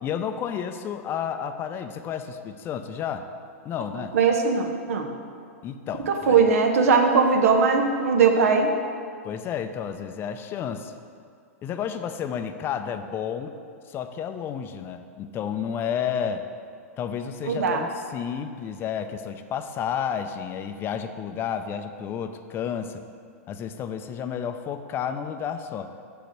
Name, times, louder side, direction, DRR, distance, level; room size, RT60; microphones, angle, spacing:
voice 1, 0.0-3.3 3.6-4.1 5.6-6.4 9.2-10.9 11.6-13.5 13.9-16.4 17.0-23.0 23.5-25.9, left 8 dB, 30° left, 8 dB, 0.5 m, -31 dB
voice 2, 4.1-5.1 6.0-8.7 17.4-17.8, right 5 dB, 75° right, 4 dB, 0.9 m, -20 dB
6.4 x 5.2 x 5.9 m, 2.2 s
hypercardioid pair, 115°, 8 cm